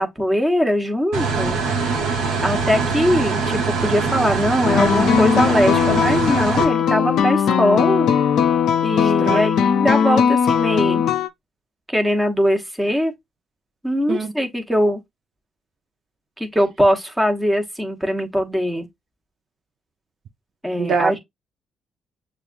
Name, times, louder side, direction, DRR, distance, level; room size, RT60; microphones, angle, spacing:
voice 1, 0.0-1.6 1.9-2.0 2.4-8.1 8.8-11.0 11.9-13.1 13.8-15.0 16.4-18.9 20.6-21.2, equal, 10° right, 1.3 m, -21 dB
sound 1, 1.1-6.6, right 4 dB, 85° right, 1.1 m, -23 dB
sound 2, 4.6-11.3, left 7 dB, 75° left, 0.4 m, -19 dB
voice 2, 9.0-9.4 14.1-14.3 20.8-21.2, right 5 dB, 65° right, 0.6 m, -24 dB
6.7 x 2.4 x 2.4 m
supercardioid pair, 55°, 0 cm